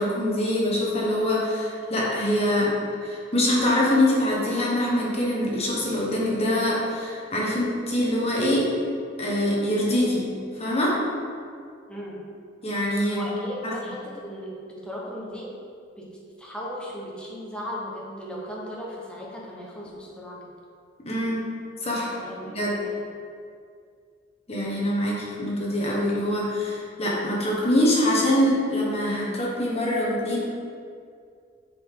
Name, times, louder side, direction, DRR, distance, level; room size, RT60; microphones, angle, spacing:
voice 1, 0.0-2.7 3.0-8.7 9.2-10.3 10.6-11.0 12.6-13.2 13.6-13.8 21.0-21.4 21.8-22.1 22.5-22.8 24.5-30.4, left 1 dB, 35° left, -5 dB, 1.5 m, -24 dB
voice 2, 11.9-12.2 13.1-15.6 16.0-20.5 22.2-23.0, equal, 5° left, -5 dB, 1.2 m, -36 dB
7.4 x 5.0 x 3.9 m, 2.3 s
head